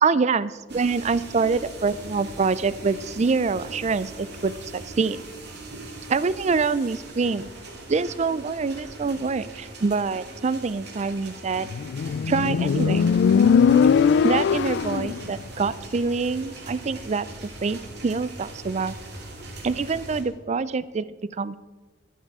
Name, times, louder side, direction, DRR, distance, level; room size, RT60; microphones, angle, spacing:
voice 1, 0.0-5.2 6.1-7.5 7.9-11.7 12.3-13.1 14.2-17.3 17.6-19.0 19.6-21.6, right 4 dB, 40° right, 17 dB, 0.4 m, -25 dB
sound 1, 0.7-20.2, right 2 dB, 65° right, 2.4 m, -40 dB
Motorcycle, 11.7-15.2, left 6 dB, 65° left, 0.3 m, -20 dB
12.0 x 11.5 x 4.8 m, 1.3 s
head